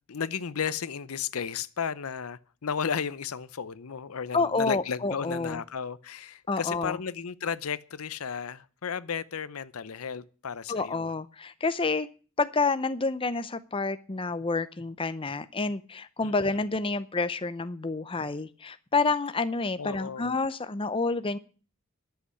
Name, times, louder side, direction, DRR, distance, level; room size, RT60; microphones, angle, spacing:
voice 1, 0.1-11.1 16.2-16.6 19.8-20.3, left 7 dB, 80° left, 0.7 m, -34 dB
voice 2, 4.3-5.6 6.5-7.0 10.7-12.1 12.4-21.4, left 3 dB, 25° left, 0.6 m, -29 dB
11.5 x 8.0 x 9.6 m
head